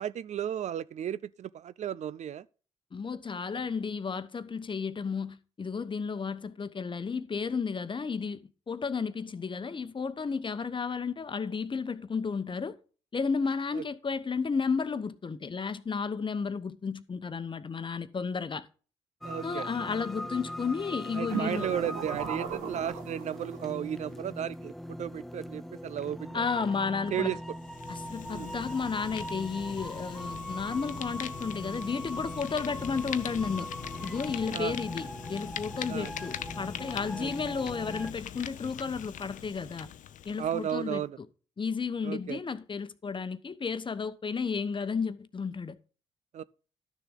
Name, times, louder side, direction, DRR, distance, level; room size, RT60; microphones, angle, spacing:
voice 1, 0.0-2.4 13.7-13.8 19.2-19.7 21.2-26.5 27.1-27.4 28.3-28.5 34.5-34.7 35.9-36.1 37.2-37.3 40.4-41.2 42.0-42.4 46.3-46.4, right 10 dB, 55° right, 0.4 m, -34 dB
voice 2, 2.9-12.8 13.1-18.7 19.4-21.7 26.3-27.4 27.9-33.7 34.0-39.9 40.2-41.0 41.6-45.8, left 5 dB, 35° left, 0.9 m, -33 dB
sound 1, 19.2-38.1, equal, ahead, 0.5 m, -41 dB
sound 2, 21.3-23.7, right 7 dB, 80° right, 1.2 m, -36 dB
Fire, 27.4-40.8, left 10 dB, 65° left, 0.7 m, -42 dB
12.0 x 6.8 x 3.8 m
hypercardioid pair, 45°, 14 cm